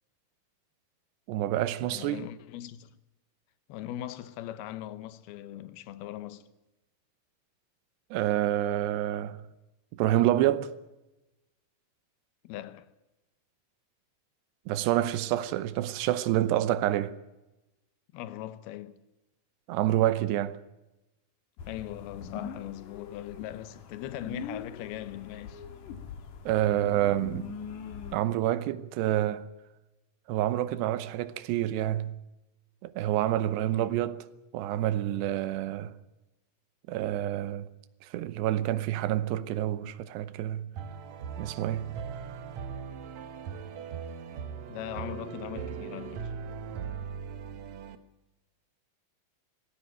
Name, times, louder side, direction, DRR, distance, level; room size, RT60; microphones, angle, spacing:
voice 1, 1.3-2.2 8.1-9.4 9.9-10.7 14.7-17.1 19.7-20.6 26.5-27.5 28.1-29.5 30.3-32.2 32.8-34.3 34.5-35.9 36.9-37.7 38.0-40.7 41.4-42.0, right 13 dB, 90° right, 3.0 m, -28 dB
voice 2, 1.9-3.0 3.7-6.5 12.4-12.9 18.1-19.0 21.7-25.6 33.7-34.0 44.7-46.3, left 13 dB, 75° left, 2.8 m, -40 dB
sound 1, 21.6-28.2, left 6 dB, 60° left, 3.0 m, -42 dB
sound 2, 40.8-48.0, right 6 dB, 75° right, 1.7 m, -39 dB
19.0 x 16.5 x 9.1 m
omnidirectional pair, 4.7 m